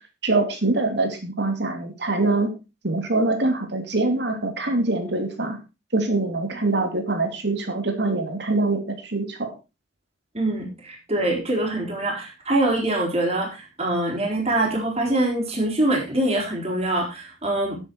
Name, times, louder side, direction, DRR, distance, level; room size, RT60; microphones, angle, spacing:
voice 1, 0.2-2.5 2.8-5.6 5.9-9.5, right 2 dB, 65° right, 5 dB, 2.8 m, -24 dB
voice 2, 10.3-17.8, right 1 dB, 35° right, 0 dB, 4.0 m, -24 dB
9.8 x 8.8 x 4.6 m, 0.29 s
head